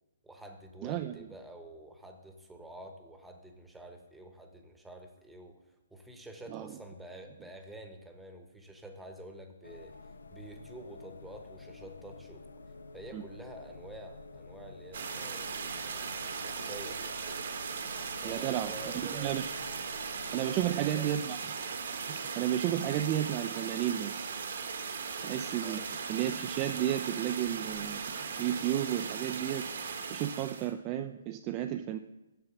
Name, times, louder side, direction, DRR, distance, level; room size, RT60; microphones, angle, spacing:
voice 1, 0.2-5.6 5.9-10.0 10.3-12.5 12.9-17.2 18.2-19.4 20.5-21.2 25.6-25.9, right 1 dB, 5° right, 4 dB, 0.9 m, -48 dB
voice 2, 0.8-1.2 6.5-6.7 13.1-13.2 18.2-19.5 20.3-21.4 22.1-24.3 25.2-25.8 26.1-28.1 28.4-32.0, right 12 dB, 30° right, 7 dB, 0.3 m, -33 dB
sound 1, 9.6-20.8, left 3 dB, 80° left, 0.6 m, -50 dB
sound 2, 14.9-30.7, right 5 dB, 65° right, 1.1 m, -38 dB
6.9 x 6.8 x 5.8 m, 1.0 s
hypercardioid pair, 140°, 0 cm